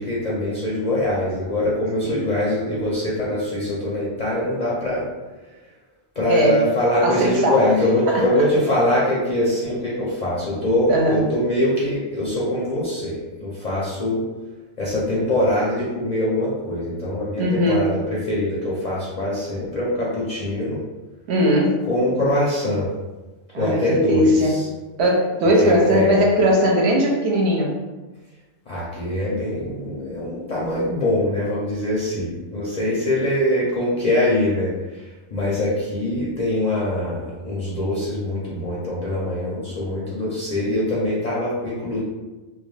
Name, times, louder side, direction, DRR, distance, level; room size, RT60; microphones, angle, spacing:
voice 1, 0.0-5.0 6.2-14.2 14.8-20.8 21.9-22.9 23.5-24.7 25.6-26.2 28.7-42.0, left 1 dB, 50° left, -6 dB, 0.5 m, -23 dB
voice 2, 6.3-6.6 7.0-7.6 8.1-8.2 10.9-11.2 17.4-17.9 21.3-21.8 23.5-24.6 25.0-27.7, equal, 65° right, -1 dB, 0.8 m, -19 dB
2.3 x 2.2 x 3.2 m, 1.2 s
omnidirectional pair, 1.3 m